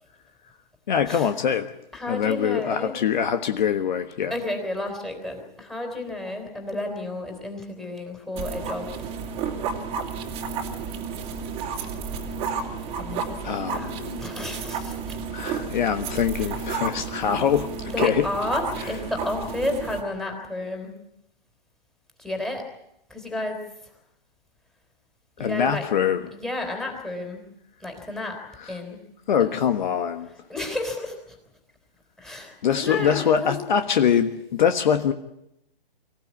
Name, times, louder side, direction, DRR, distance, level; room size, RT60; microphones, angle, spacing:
voice 1, 0.9-1.7 2.1-4.3 13.4-14.2 15.3-18.3 25.4-26.2 28.6-28.7 29.3-30.3 32.6-35.1, left 8 dB, 50° left, 8 dB, 1.4 m, -23 dB
voice 2, 1.9-3.0 4.3-8.9 13.0-15.2 17.9-21.0 22.2-22.6 23.1-23.6 25.4-25.8 26.3-27.5 27.8-28.4 28.7-29.0 29.4-29.5 30.5-31.4 32.2-33.6, left 2 dB, ahead, 2 dB, 3.6 m, -31 dB
sound 1, 8.3-20.0, right 5 dB, 20° right, 2.4 m, -32 dB
25.0 x 15.5 x 8.4 m, 0.84 s
hypercardioid pair, 145°, 29 cm